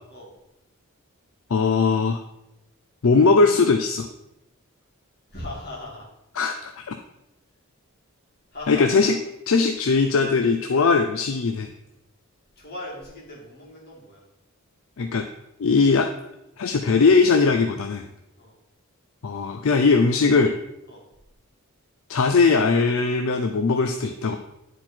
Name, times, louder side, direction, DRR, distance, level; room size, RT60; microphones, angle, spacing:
voice 1, 1.5-2.2 3.0-4.1 6.4-7.0 8.7-9.2 9.5-11.7 15.0-15.3 15.6-16.1 16.6-18.1 19.2-20.6 22.1-24.4, left 4 dB, 70° left, 6 dB, 0.5 m, -20 dB
voice 2, 5.3-6.1 8.5-9.1 12.6-14.2 18.4-18.6 20.9-21.0, left 1 dB, 45° left, -5 dB, 2.7 m, -38 dB
9.6 x 4.3 x 4.4 m, 0.87 s
head